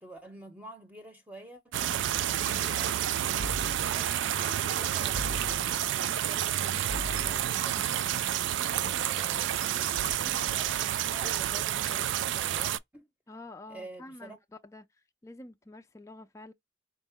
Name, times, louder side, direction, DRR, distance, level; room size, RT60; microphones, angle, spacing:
voice 1, 0.0-3.0 3.9-8.4 8.7-13.1 13.7-14.4, right 1 dB, 10° right, 0.7 m, -49 dB
sound 1, 1.7-12.8, right 11 dB, 75° right, 0.3 m, -29 dB
sound 2, 3.4-4.1 5.1-5.9 6.9-7.6, left 1 dB, 45° right, 0.8 m, -39 dB
voice 2, 13.3-14.4 14.6-16.5, left 2 dB, 15° left, 0.4 m, -48 dB
4.5 x 2.0 x 3.4 m
head